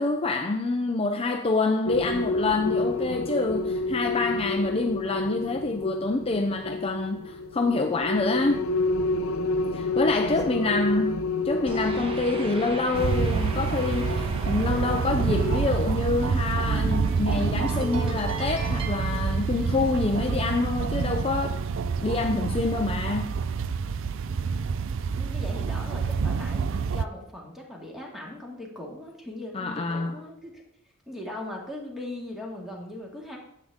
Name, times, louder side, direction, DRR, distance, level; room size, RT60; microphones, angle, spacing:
voice 1, 0.0-8.6 9.7-21.6 22.0-23.4 29.5-30.2, left 3 dB, 30° left, 0.5 m, -27 dB
sound 1, 1.9-15.6, left 2 dB, 75° left, 0.6 m, -30 dB
voice 2, 10.2-10.7 11.0-11.1 25.2-30.6 31.1-33.4, left 1 dB, ahead, 2.1 m, -39 dB
sound 2, 11.7-20.2, right 1 dB, 25° right, 1.2 m, -38 dB
sound 3, 12.9-27.0, right 5 dB, 65° right, 0.4 m, -27 dB
9.9 x 7.7 x 3.6 m
head